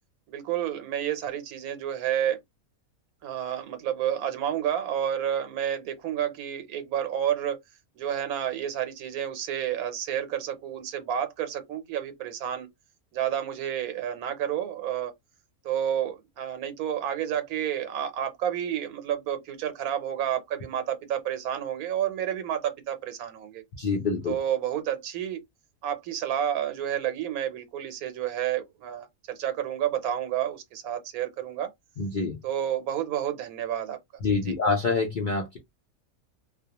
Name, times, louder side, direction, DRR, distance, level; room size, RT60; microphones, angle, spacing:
voice 1, 0.3-2.4 3.2-7.6 8.0-12.7 13.1-15.1 15.6-23.6 24.3-25.4 25.8-31.7 32.4-34.0 34.4-34.5, right 10 dB, 85° right, 1.1 m, -30 dB
voice 2, 23.8-24.4 32.0-32.4 34.2-35.6, left 4 dB, 60° left, 0.5 m, -26 dB
2.4 x 2.2 x 2.8 m
omnidirectional pair, 1.5 m